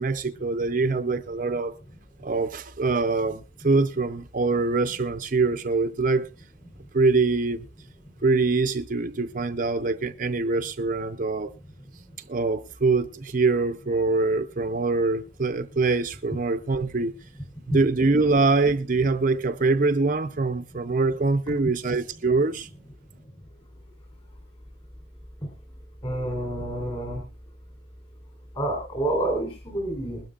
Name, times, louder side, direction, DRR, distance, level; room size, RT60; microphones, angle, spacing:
voice 1, 0.0-1.7 2.2-6.3 6.9-7.7 8.2-11.5 12.3-17.1 17.7-22.7, right 3 dB, 40° right, 0.6 m, -24 dB
voice 2, 26.0-27.2 28.6-30.2, right 1 dB, 25° left, 3.7 m, -28 dB
21.0 x 12.5 x 2.4 m
head